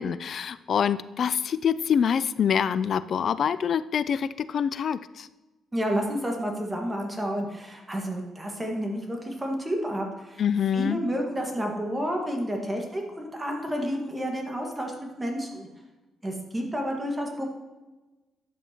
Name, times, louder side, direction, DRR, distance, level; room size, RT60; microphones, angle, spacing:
voice 1, 0.0-5.3 10.4-11.0, left 7 dB, 55° left, 16 dB, 0.3 m, -25 dB
voice 2, 5.7-10.4 10.7-15.7 16.2-17.5, equal, 15° right, 1 dB, 1.6 m, -30 dB
10.5 x 7.1 x 2.9 m, 1.2 s
cardioid pair, 90°, 0 cm